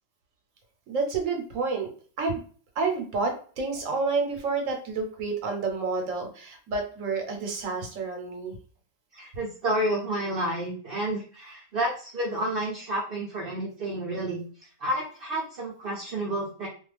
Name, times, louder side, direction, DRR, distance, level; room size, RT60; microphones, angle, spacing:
voice 1, 0.9-1.9 2.2-2.4 2.8-8.6, right 4 dB, 80° right, 3 dB, 1.1 m, -29 dB
voice 2, 9.1-14.5 14.8-16.7, right 1 dB, 55° right, -2 dB, 0.7 m, -30 dB
2.4 x 2.3 x 3.2 m, 0.42 s
omnidirectional pair, 1.4 m